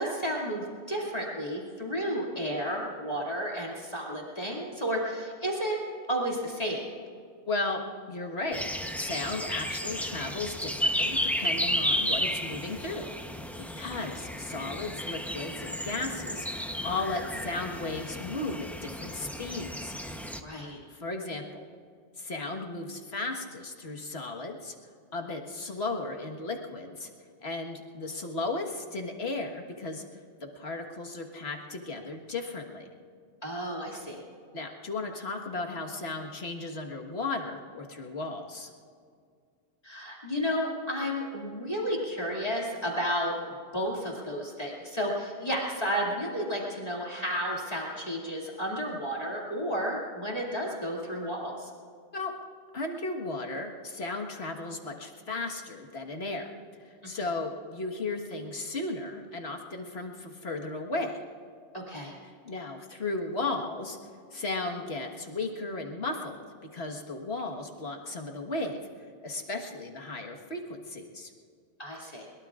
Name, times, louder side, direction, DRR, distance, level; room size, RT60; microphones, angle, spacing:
voice 1, 0.0-5.8 6.1-6.9 20.4-20.8 33.4-34.2 39.8-51.7 57.0-57.1 61.7-62.1 71.8-72.3, equal, 35° left, -4 dB, 2.6 m, -32 dB
voice 2, 7.5-7.8 8.1-8.6 9.0-13.1 13.8-20.0 20.9-21.6 22.2-24.8 25.1-27.1 27.4-30.0 30.4-32.9 34.5-38.7 52.1-52.3 52.7-56.5 56.8-61.3 62.4-64.0 64.3-66.4 66.7-68.8 69.2-71.3, left 3 dB, 65° left, 2 dB, 1.8 m, -35 dB
sound 1, 8.5-20.4, equal, ahead, 0.7 m, -33 dB
22.5 x 22.5 x 2.5 m, 2.2 s
omnidirectional pair, 1.1 m